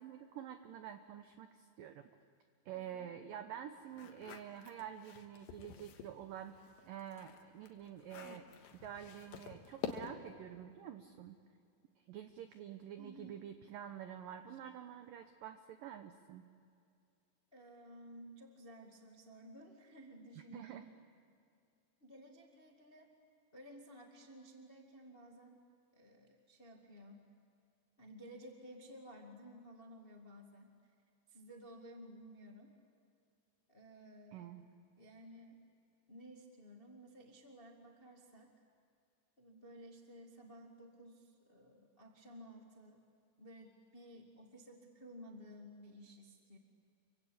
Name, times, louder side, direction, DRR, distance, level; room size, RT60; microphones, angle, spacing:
voice 1, 0.0-2.1 2.7-8.5 8.7-11.4 12.1-16.4 20.5-20.9 34.3-34.6, right 10 dB, 85° right, 8 dB, 2.0 m, -48 dB
voice 2, 2.7-3.1 13.0-13.4 14.5-14.6 17.5-20.9 22.0-23.1 23.5-25.6 25.9-27.2 28.0-30.7 31.3-32.7 33.7-34.5 35.0-35.6 36.1-38.5 39.4-43.0 43.4-46.6, equal, 35° left, 1 dB, 0.8 m, -55 dB
sound 1, 3.9-6.2 6.6-10.4, left 8 dB, 90° left, 3.8 m, -48 dB
28.0 x 24.5 x 8.5 m, 2.4 s
omnidirectional pair, 5.2 m